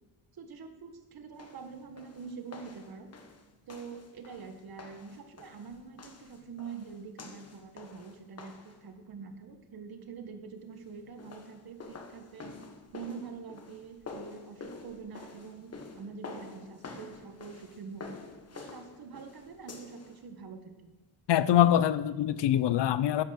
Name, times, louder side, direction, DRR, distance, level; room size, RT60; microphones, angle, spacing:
voice 1, 0.3-3.1 3.7-12.5 12.9-18.1 18.5-21.0, right 5 dB, 55° right, 6 dB, 1.6 m, -45 dB
sound 1, 1.4-8.8 11.0-20.2, left 4 dB, 35° left, 1.4 m, -48 dB
voice 2, 21.3-23.2, left 11 dB, 70° left, 15 dB, 0.6 m, -24 dB
11.0 x 9.1 x 6.5 m, 1.1 s
cardioid pair, 145°, 44 cm